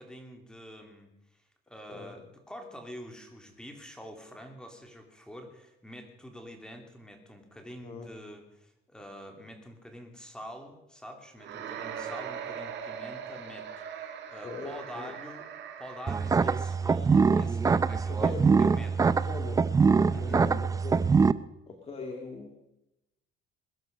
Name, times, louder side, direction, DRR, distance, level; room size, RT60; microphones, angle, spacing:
voice 1, 0.0-13.8 14.3-15.5 15.8-18.3 18.6-19.1 20.1-20.4, equal, 5° left, 4 dB, 2.8 m, -46 dB
voice 2, 7.8-8.2 14.4-15.1 18.1-18.6 19.1-19.6 20.1-20.9 21.7-22.5, left 4 dB, 30° left, 3 dB, 2.1 m, -41 dB
sound 1, 11.4-16.8, right 7 dB, 60° right, 2.3 m, -41 dB
sound 2, 16.1-21.3, right 5 dB, 15° right, 0.5 m, -24 dB
21.5 x 12.0 x 5.2 m, 0.91 s
cardioid pair, 155°, 21 cm